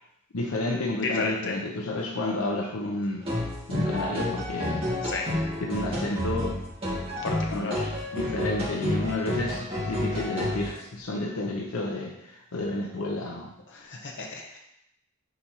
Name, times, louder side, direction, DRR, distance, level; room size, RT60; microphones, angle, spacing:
voice 1, 0.3-3.3 3.7-4.8 5.6-6.6 7.5-13.5 13.8-14.0, left 2 dB, 85° left, 0 dB, 0.8 m, -31 dB
voice 2, 1.2-1.6 5.0-5.3 7.2-7.7 13.7-14.6, left 3 dB, 60° left, 0 dB, 1.0 m, -33 dB
sound 1, 3.2-10.7, left 1 dB, 25° right, 2.2 m, -30 dB
5.1 x 4.2 x 4.4 m, 0.81 s
head